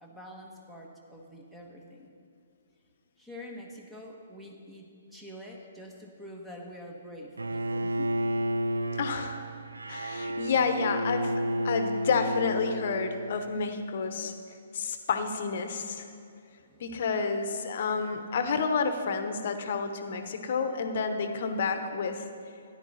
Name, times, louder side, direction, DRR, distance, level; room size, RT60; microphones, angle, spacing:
voice 1, 0.0-2.1 3.2-8.1 16.6-17.1, left 1 dB, 5° right, -1 dB, 1.4 m, -46 dB
Bowed string instrument, 7.4-13.5, equal, 80° right, 0.5 m, -31 dB
voice 2, 8.9-9.4 9.9-11.3 11.6-14.3 14.7-16.1 16.8-22.2, left 5 dB, 50° left, 8 dB, 1.0 m, -30 dB
13.5 x 10.0 x 4.2 m, 2.5 s
figure-of-eight pair, 125°, 0 cm